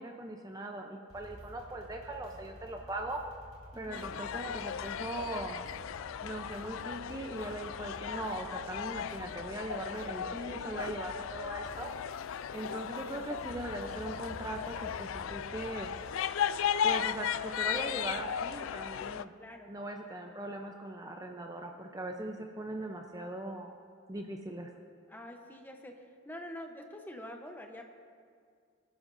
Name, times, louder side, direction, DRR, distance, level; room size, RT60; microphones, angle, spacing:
voice 1, 0.0-3.2 3.7-5.6 6.2-11.9 12.5-15.9 16.8-19.3 19.7-23.7 24.1-24.7, right 1 dB, 15° right, 3 dB, 0.6 m, -40 dB
sound 1, 1.1-16.7, equal, 35° right, 3.1 m, -52 dB
voice 2, 3.7-4.2 19.4-19.8 25.1-27.8, left 1 dB, 10° left, 3 dB, 0.8 m, -46 dB
sound 2, 3.9-19.2, left 9 dB, 70° left, 0.3 m, -36 dB
24.0 x 11.0 x 2.6 m, 2.2 s
head